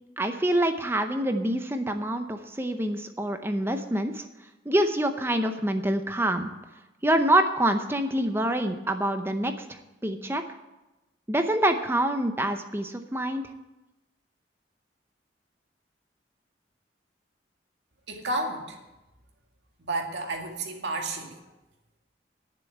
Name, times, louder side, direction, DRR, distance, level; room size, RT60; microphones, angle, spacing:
voice 1, 0.2-4.3 4.7-6.5 7.0-10.4 11.3-13.4, right 1 dB, 15° right, 7 dB, 0.7 m, -26 dB
voice 2, 18.1-18.8 19.8-21.5, right 2 dB, 80° right, 1 dB, 2.1 m, -31 dB
10.5 x 6.9 x 9.2 m, 1.0 s
head